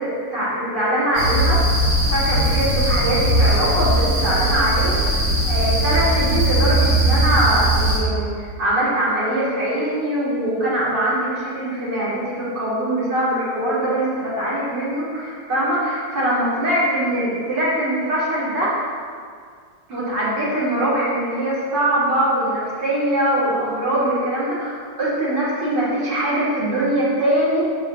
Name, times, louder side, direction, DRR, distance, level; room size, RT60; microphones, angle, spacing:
voice 1, 0.0-1.6 2.1-18.9 19.9-27.6, right 1 dB, 70° right, -8 dB, 3.4 m, -22 dB
sound 1, 1.1-8.0, right 1 dB, 85° right, 3.4 m, -19 dB
7.2 x 5.7 x 7.0 m, 2.1 s
omnidirectional pair, 2.0 m